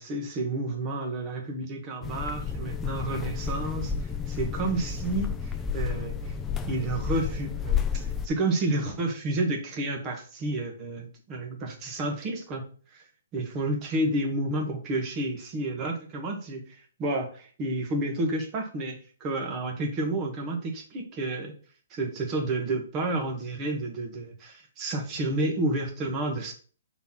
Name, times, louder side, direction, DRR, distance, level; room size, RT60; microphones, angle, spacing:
voice 1, 0.0-6.3 6.7-13.0 13.3-21.5 21.9-26.5, right 2 dB, 20° right, 2 dB, 1.4 m, -30 dB
sound 1, 2.0-8.3, left 6 dB, 10° left, 0.4 m, -31 dB
5.7 x 4.2 x 5.9 m, 0.41 s
hypercardioid pair, 165°, 0 cm